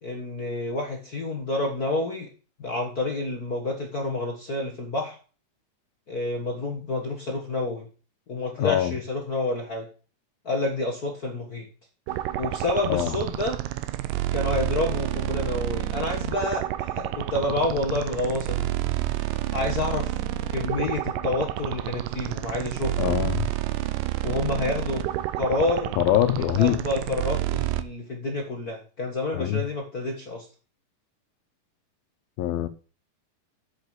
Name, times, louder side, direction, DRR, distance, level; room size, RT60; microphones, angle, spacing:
voice 1, 0.0-2.3 2.6-5.2 6.1-7.9 8.3-9.9 10.4-11.7 12.4-13.6 14.3-18.7 19.5-20.2 20.5-23.1 24.2-25.1 25.4-26.0 26.3-30.4, left 2 dB, 50° left, 1.0 m, -29 dB
voice 2, 8.6-9.0 12.9-13.2 23.0-23.5 26.0-26.8 29.3-29.6 32.4-32.7, left 13 dB, 90° left, 2.8 m, -23 dB
sound 1, 12.1-27.8, right 14 dB, 80° right, 2.2 m, -29 dB
7.9 x 6.7 x 8.1 m
omnidirectional pair, 4.1 m